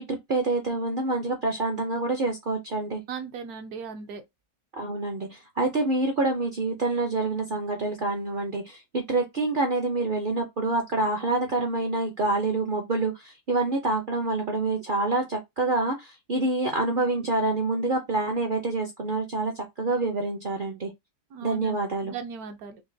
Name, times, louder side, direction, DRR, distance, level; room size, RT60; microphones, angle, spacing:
voice 1, 0.0-3.0 4.7-20.9 21.4-22.1, right 3 dB, 55° right, 0.6 m, -27 dB
voice 2, 3.1-4.2 21.3-22.8, right 6 dB, 75° right, 1.2 m, -38 dB
5.1 x 2.2 x 2.6 m
omnidirectional pair, 1.7 m